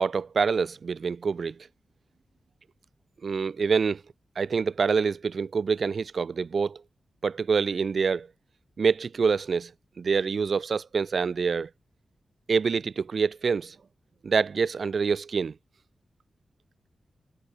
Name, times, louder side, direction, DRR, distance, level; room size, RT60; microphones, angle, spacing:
voice 1, 0.0-1.5 3.2-4.0 4.4-6.8 7.2-8.3 8.8-9.7 10.0-11.7 12.5-13.8 14.2-15.5, right 5 dB, 55° right, 6.0 m, -26 dB
wide cardioid pair, 130°, 0 cm